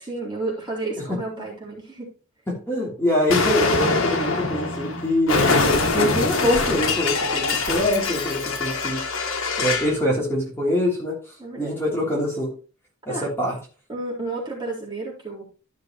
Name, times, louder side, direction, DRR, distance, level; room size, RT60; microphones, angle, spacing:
voice 1, 0.1-2.1 11.4-11.7 13.1-13.2 13.9-15.4, right 2 dB, 20° right, -5 dB, 3.8 m, -31 dB
voice 2, 2.5-9.0 9.6-11.2 11.6-12.5 13.1-13.6, left 1 dB, 10° left, -4 dB, 3.1 m, -24 dB
Explosion, 3.3-10.0, left 3 dB, 75° left, 1.5 m, -23 dB
13.5 x 6.5 x 3.0 m, 0.35 s
head